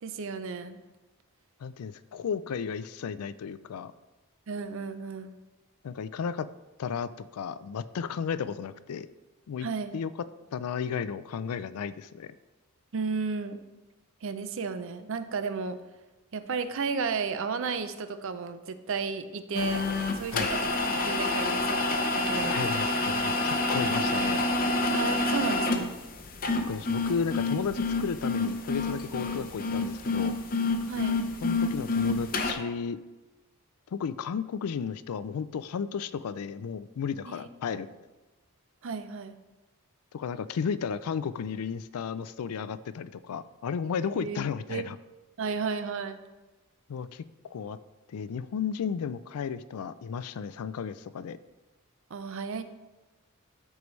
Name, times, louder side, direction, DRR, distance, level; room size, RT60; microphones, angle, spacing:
voice 1, 0.0-0.8 4.5-5.4 9.6-9.9 12.9-13.6 14.2-15.8 16.3-19.8 20.1-20.6 21.0-22.7 24.9-25.9 30.9-31.2 37.3-37.5 38.8-39.4 44.1-44.4 44.7-44.8 45.4-46.2 52.1-52.6, right 5 dB, 60° right, 10 dB, 0.5 m, -33 dB
voice 2, 1.6-3.9 5.8-6.5 6.8-9.1 9.5-9.7 9.9-10.1 10.5-12.3 20.3-20.5 22.4-24.4 26.7-30.4 31.4-33.0 33.9-37.9 40.1-45.0 46.9-47.8 48.1-51.4, left 6 dB, 80° left, 15 dB, 0.4 m, -34 dB
sound 1, 19.5-32.5, left 2 dB, 40° left, 0.7 m, -28 dB
13.5 x 4.7 x 3.2 m, 1.1 s
head